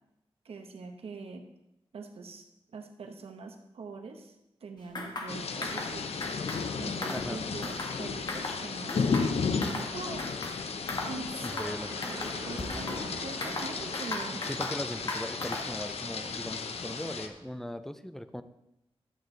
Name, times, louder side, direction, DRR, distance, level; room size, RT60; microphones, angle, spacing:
voice 1, 0.4-1.5 1.9-2.4 2.7-4.4 4.6-6.1 6.8-10.3 11.1-11.8 12.0-14.5, right 4 dB, 70° right, 4 dB, 0.9 m, -43 dB
sound 1, 4.9-5.3 5.6-5.9 6.2-6.6 6.9-8.0 8.3-8.6 8.9-9.9 10.2-10.6 10.9-11.1 11.4-11.7 12.0-13.0 13.4-14.8 15.1-15.8, left 2 dB, 45° left, 1.5 m, -37 dB
sound 2, 5.3-17.3, left 5 dB, 80° left, 0.8 m, -34 dB
voice 2, 7.1-7.4 11.4-11.9 14.3-18.4, left 1 dB, 5° left, 10 dB, 0.5 m, -39 dB
sound 3, 11.2-17.5, right 2 dB, 30° right, 0.9 m, -47 dB
11.5 x 8.0 x 3.9 m, 0.86 s
wide cardioid pair, 135°, 10 cm